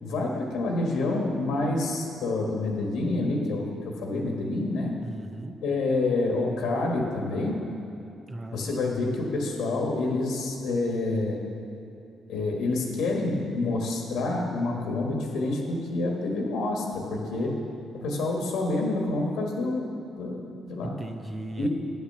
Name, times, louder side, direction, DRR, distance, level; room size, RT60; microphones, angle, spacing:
voice 1, 0.0-5.0 5.6-7.6 8.5-11.4 12.3-17.6 17.9-19.8 20.1-20.9 21.6-21.7, left 2 dB, 85° left, 0 dB, 1.5 m, -28 dB
voice 2, 5.0-5.6 8.3-8.7 20.8-21.7, right 1 dB, 25° right, 7 dB, 0.6 m, -37 dB
9.6 x 6.0 x 6.8 m, 2.8 s
cardioid pair, 90°, 0 cm